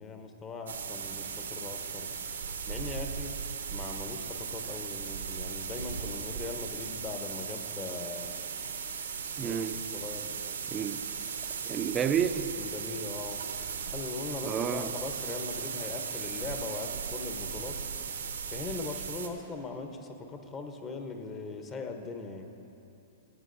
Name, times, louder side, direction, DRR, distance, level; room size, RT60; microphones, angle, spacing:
voice 1, 0.0-2.1 2.7-3.4 3.7-8.3 9.4-10.4 12.5-13.4 13.9-17.8 18.5-22.5, left 3 dB, 25° left, 5 dB, 0.7 m, -40 dB
sound 1, 0.7-19.3, right 6 dB, 85° right, 0.6 m, -37 dB
voice 2, 9.4-9.8 10.7-11.0 11.7-12.6 14.4-14.9, right 8 dB, 25° right, 10 dB, 0.3 m, -30 dB
14.0 x 7.4 x 2.6 m, 2.8 s
hypercardioid pair, 120°, 0 cm